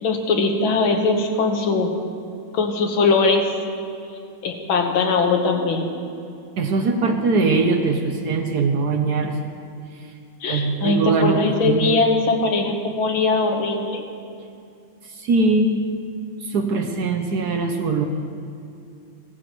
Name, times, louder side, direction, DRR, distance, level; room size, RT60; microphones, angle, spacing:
voice 1, 0.0-1.9 2.5-3.5 4.4-5.9 10.4-14.0, left 3 dB, 80° left, 3 dB, 2.0 m, -20 dB
voice 2, 6.6-9.4 9.9-10.1 10.5-12.0 15.0-15.8 16.4-18.1, right 3 dB, 65° right, 5 dB, 1.1 m, -21 dB
16.5 x 14.0 x 3.0 m, 2.5 s
omnidirectional pair, 2.2 m